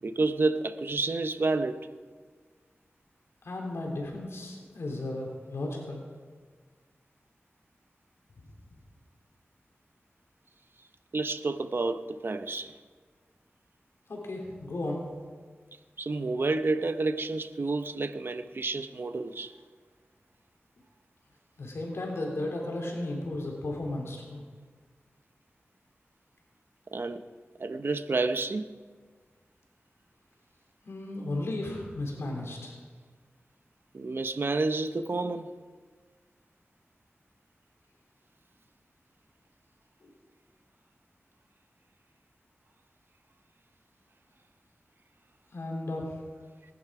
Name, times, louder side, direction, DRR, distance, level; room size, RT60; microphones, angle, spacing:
voice 1, 0.0-1.9 11.1-12.7 16.0-19.5 26.9-27.2 27.6-28.8 33.9-35.5, right 3 dB, 60° right, 10 dB, 0.8 m, -29 dB
voice 2, 3.4-6.0 14.1-15.0 21.6-24.4 30.8-32.8 45.5-46.0, left 2 dB, 85° left, -1 dB, 3.3 m, -34 dB
19.5 x 10.5 x 4.9 m, 1.5 s
wide cardioid pair, 65°, 4 cm